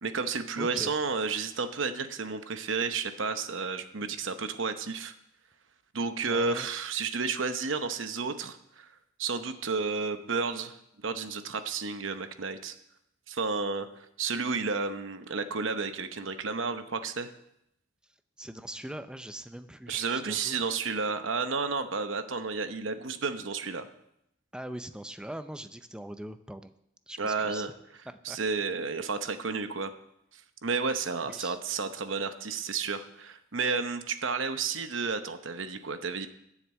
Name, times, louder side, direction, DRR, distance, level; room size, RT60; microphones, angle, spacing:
voice 1, 0.0-5.1 5.9-8.9 9.2-10.8 11.0-12.7 13.3-17.3 19.9-23.9 27.2-27.7 28.2-29.9 30.3-36.3, right 4 dB, 65° right, 9 dB, 0.9 m, -32 dB
voice 2, 0.6-0.9 6.3-6.7 18.4-20.8 24.5-26.7 27.1-27.7 28.1-28.4 31.2-31.6, right 1 dB, 5° right, 10 dB, 0.5 m, -41 dB
10.0 x 7.4 x 8.2 m, 0.79 s
head